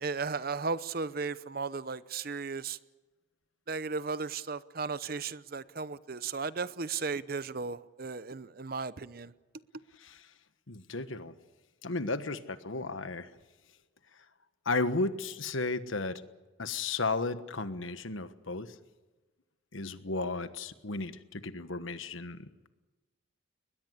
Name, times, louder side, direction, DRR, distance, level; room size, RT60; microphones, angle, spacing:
voice 1, 0.0-2.8 3.7-9.3, right 4 dB, 50° right, 0.7 m, -35 dB
voice 2, 10.0-10.3 10.7-11.3 11.8-13.3 14.6-16.2 16.6-18.8 19.7-22.7, left 3 dB, 85° left, 1.4 m, -34 dB
22.0 x 20.5 x 8.1 m
head